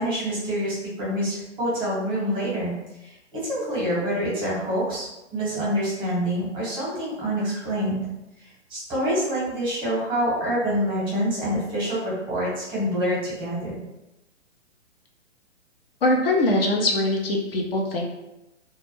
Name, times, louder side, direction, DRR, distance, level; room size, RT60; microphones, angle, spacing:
voice 1, 0.0-2.7 3.0-8.0 8.7-13.8, equal, 15° right, -7 dB, 0.8 m, -26 dB
voice 2, 16.0-18.1, left 1 dB, 55° left, -1 dB, 0.5 m, -22 dB
2.2 x 2.0 x 3.0 m, 0.94 s
hypercardioid pair, 135°, 37 cm